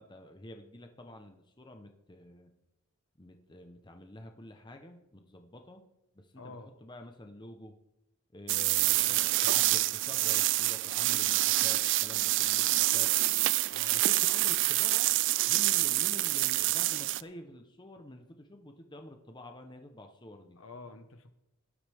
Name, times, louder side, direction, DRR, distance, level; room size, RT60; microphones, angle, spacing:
voice 1, 0.0-2.5 3.2-5.8 6.1-7.7 8.3-13.1 13.9-15.1 15.5-20.6, left 1 dB, 20° left, 5 dB, 0.9 m, -48 dB
voice 2, 6.4-6.7 8.9-9.2 13.7-14.0 20.6-21.3, left 3 dB, 65° left, 8 dB, 1.3 m, -48 dB
sound 1, 8.5-17.2, right 18 dB, 55° right, 0.3 m, -27 dB
17.5 x 11.5 x 3.5 m, 0.91 s
head